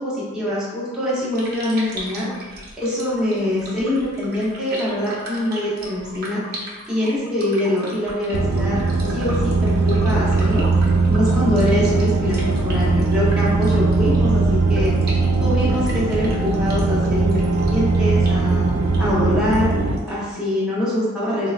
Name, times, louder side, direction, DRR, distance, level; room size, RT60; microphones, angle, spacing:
voice 1, 0.0-2.3 2.8-6.4 6.9-8.8 9.1-10.6 11.1-14.9 15.4-18.7 19.0-19.7 20.0-21.5, left 1 dB, 5° right, -9 dB, 0.7 m, -24 dB
sound 1, 1.1-20.3, right 1 dB, 50° right, 0.6 m, -39 dB
sound 2, 8.3-20.0, right 3 dB, 90° right, 0.4 m, -19 dB
3.5 x 2.1 x 2.4 m, 1.3 s
head